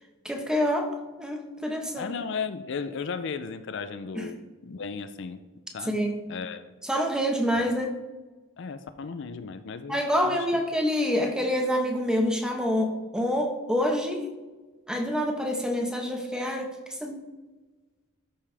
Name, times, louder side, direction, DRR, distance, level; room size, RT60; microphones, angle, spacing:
voice 1, 0.2-2.1 4.1-4.3 5.9-6.3 6.8-8.0 9.9-14.3 14.9-17.2, equal, 5° right, 3 dB, 1.0 m, -27 dB
voice 2, 2.0-5.4 5.7-6.0 6.3-6.6 7.5-7.7 8.6-10.4, left 5 dB, 60° left, 10 dB, 0.4 m, -35 dB
13.0 x 5.4 x 3.4 m, 1.2 s
head